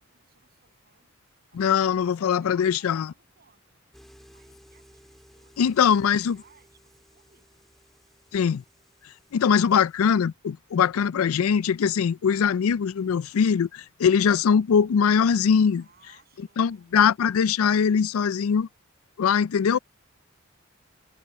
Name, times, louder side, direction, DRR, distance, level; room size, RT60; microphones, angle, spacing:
voice 1, 0.0-3.9 4.3-7.7 12.1-12.4 15.8-17.1, right 5 dB, 50° right, 7.9 m, -63 dB
voice 2, 1.6-3.1 5.6-6.4 8.3-8.6 9.3-15.8 16.6-18.7 19.2-19.8, left 7 dB, 90° left, 0.4 m, -22 dB
sound 1, 3.9-10.2, equal, ahead, 3.2 m, -57 dB
head